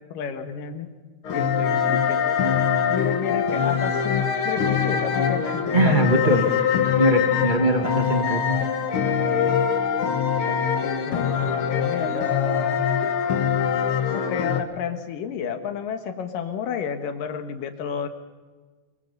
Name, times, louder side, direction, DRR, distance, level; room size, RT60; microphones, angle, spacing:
voice 1, 0.1-0.9 1.3-2.4 2.9-6.3 10.8-12.9 14.1-18.1, left 7 dB, 90° left, 7 dB, 3.1 m, -31 dB
sound 1, 1.2-14.6, left 7 dB, 50° left, 1.8 m, -23 dB
voice 2, 5.7-6.5 7.0-8.4, right 2 dB, 40° right, 4 dB, 0.6 m, -21 dB
23.5 x 23.0 x 5.4 m, 1.4 s
omnidirectional pair, 3.8 m